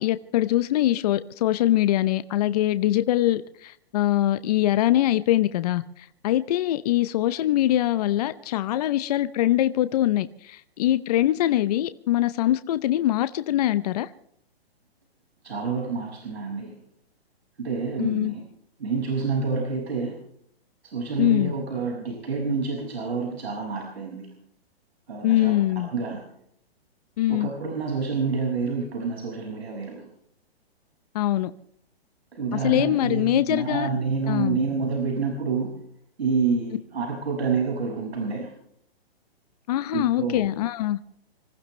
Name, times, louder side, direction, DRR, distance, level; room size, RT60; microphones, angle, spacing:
voice 1, 0.0-14.1 18.0-18.3 21.2-21.5 25.2-25.9 27.2-27.5 31.1-31.5 32.5-33.9 34.3-34.6 39.7-41.0, left 13 dB, 40° left, 0.8 m, -23 dB
voice 2, 15.4-16.7 17.6-18.4 18.8-20.1 20.9-24.3 25.1-25.5 25.9-26.2 27.3-30.1 32.3-35.7 36.2-38.5 39.9-40.4, right 4 dB, 80° right, 6.2 m, -28 dB
26.0 x 15.5 x 3.3 m
hypercardioid pair, 150°, 31 cm